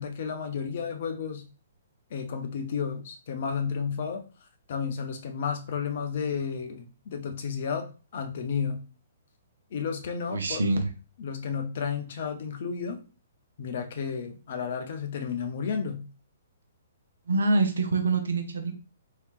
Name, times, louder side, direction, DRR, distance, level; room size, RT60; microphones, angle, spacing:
voice 1, 0.0-1.4 2.1-4.2 4.7-7.9 8.1-8.8 9.7-10.6 11.2-13.0 13.6-16.0, left 6 dB, 50° left, 5 dB, 0.6 m, -32 dB
voice 2, 10.3-10.9 17.3-18.7, right 3 dB, 65° right, 6 dB, 0.6 m, -25 dB
3.3 x 2.9 x 2.4 m, 0.33 s
figure-of-eight pair, 120°, 0 cm